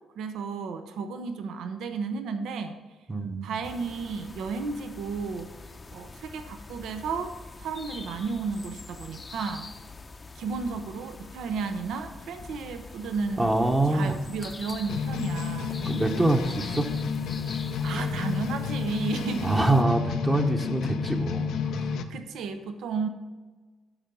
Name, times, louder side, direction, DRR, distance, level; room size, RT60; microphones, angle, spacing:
voice 1, 0.2-2.8 3.4-5.5 5.9-7.3 7.6-9.7 10.3-13.5 13.9-15.8 17.8-19.6 22.1-23.1, right 4 dB, 80° right, 8 dB, 0.8 m, -33 dB
voice 2, 3.1-3.6 13.4-14.2 15.9-16.9 19.4-21.9, right 2 dB, 20° right, 2 dB, 0.9 m, -25 dB
sound 1, 3.6-19.8, left 3 dB, 30° left, 0.7 m, -44 dB
sound 2, 14.9-22.0, left 6 dB, 85° left, 0.6 m, -30 dB
12.5 x 4.8 x 5.4 m, 1.3 s
cardioid pair, 90°, 0 cm